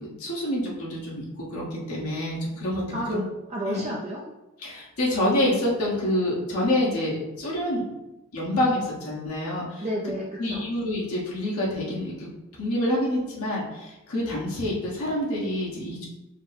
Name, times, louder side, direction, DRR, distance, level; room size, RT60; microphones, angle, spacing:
voice 1, 0.2-3.2 3.7-3.8 4.6-7.9 8.3-9.9 10.4-12.3 12.6-16.1, left 1 dB, 75° left, -5 dB, 1.3 m, -27 dB
voice 2, 2.9-4.2 9.8-10.6, equal, 30° right, -3 dB, 0.5 m, -31 dB
4.9 x 2.1 x 4.2 m, 0.99 s
head